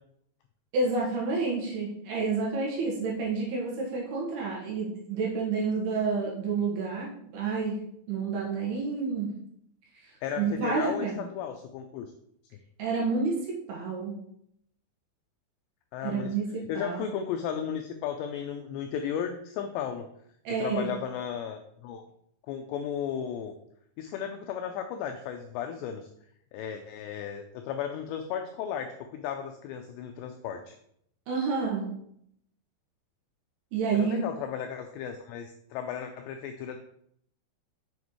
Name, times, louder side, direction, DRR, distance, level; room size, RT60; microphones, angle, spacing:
voice 1, 0.7-7.8 8.1-9.3 10.4-11.2 12.8-14.1 16.0-17.0 20.4-20.9 31.3-31.9 33.7-34.2, right 4 dB, 65° right, -3 dB, 3.0 m, -29 dB
voice 2, 10.2-12.1 15.9-16.4 16.7-20.1 20.6-22.0 22.5-23.5 24.0-26.1 26.5-30.8 33.9-36.8, left 8 dB, 85° left, 5 dB, 2.5 m, -35 dB
7.2 x 6.9 x 3.1 m, 0.71 s
omnidirectional pair, 5.5 m